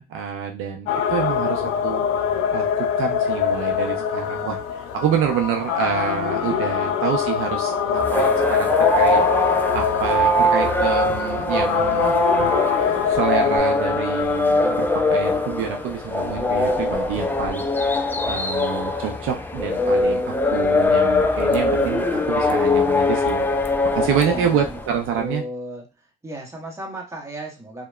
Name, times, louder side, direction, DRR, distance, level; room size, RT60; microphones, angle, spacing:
voice 1, 0.0-2.1 2.5-9.2 9.7-12.2 12.8-17.6 18.2-23.5 23.9-25.4, right 8 dB, 80° right, 3 dB, 0.5 m, -27 dB
sound 1, 0.9-13.6, left 8 dB, 85° left, 0.4 m, -24 dB
sound 2, 8.0-25.0, left 2 dB, 10° left, 0.3 m, -21 dB
voice 2, 24.2-24.6 25.1-25.8 26.2-27.9, right 1 dB, 15° right, -1 dB, 1.0 m, -34 dB
2.7 x 2.2 x 2.3 m, 0.28 s
cardioid pair, 80°, 21 cm